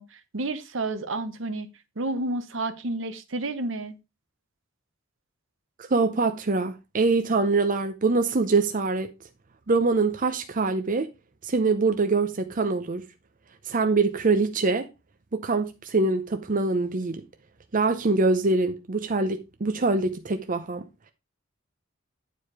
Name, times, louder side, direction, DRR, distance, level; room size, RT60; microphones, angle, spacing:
voice 1, 0.0-1.7 2.0-4.0, right 2 dB, 70° right, 1.0 m, -30 dB
voice 2, 5.9-9.1 9.7-11.1 11.4-13.0 13.6-14.9 15.3-17.2 17.7-20.9, right 3 dB, 40° right, 0.7 m, -24 dB
9.4 x 4.7 x 4.8 m
head